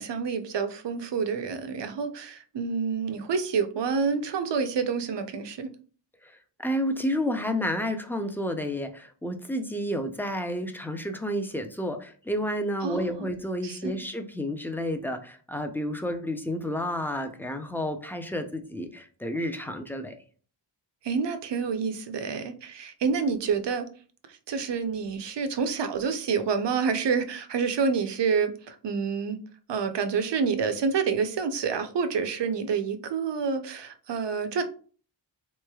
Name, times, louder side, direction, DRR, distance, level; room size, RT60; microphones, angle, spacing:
voice 1, 0.0-5.7 12.8-13.3 13.6-14.0 21.0-23.9 24.5-29.4 29.7-34.6, right 5 dB, 65° right, 9 dB, 0.6 m, -28 dB
voice 2, 6.6-20.1, equal, 5° left, 6 dB, 0.3 m, -30 dB
3.9 x 3.1 x 2.2 m, 0.41 s
wide cardioid pair, 95°, 46 cm